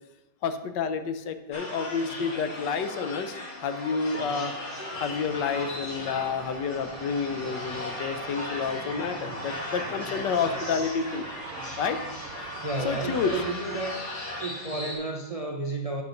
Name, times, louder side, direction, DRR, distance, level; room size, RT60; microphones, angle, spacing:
voice 1, 0.4-4.5 5.0-11.3 11.8-12.0 12.8-13.3, left 5 dB, 75° left, 9 dB, 1.4 m, -29 dB
sound 1, 1.5-15.0, left 1 dB, 55° left, 2.4 m, -37 dB
sound 2, 1.6-7.9 8.5-12.4, equal, 25° right, 1.6 m, -51 dB
sound 3, 4.9-13.5, right 10 dB, 90° right, 1.3 m, -44 dB
voice 2, 12.6-14.0 14.4-16.0, right 3 dB, 70° right, 1 dB, 0.3 m, -31 dB
9.5 x 4.8 x 6.4 m, 0.98 s
omnidirectional pair, 1.9 m